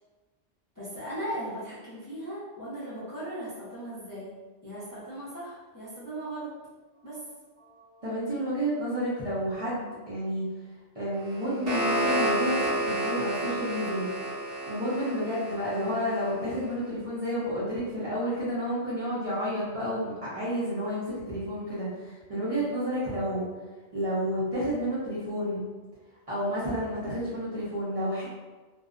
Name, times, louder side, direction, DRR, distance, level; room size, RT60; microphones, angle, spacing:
voice 1, 0.8-4.3 4.6-6.5 7.0-7.2, right 1 dB, 20° left, -11 dB, 0.6 m, -37 dB
voice 2, 7.6-10.5 10.9-14.1 14.7-23.5 23.9-25.6 26.3-28.3, equal, 35° right, -11 dB, 0.6 m, -30 dB
sound 1, 11.3-16.3, right 1 dB, 60° right, 0.9 m, -30 dB
2.5 x 2.1 x 2.4 m, 1.3 s
omnidirectional pair, 1.2 m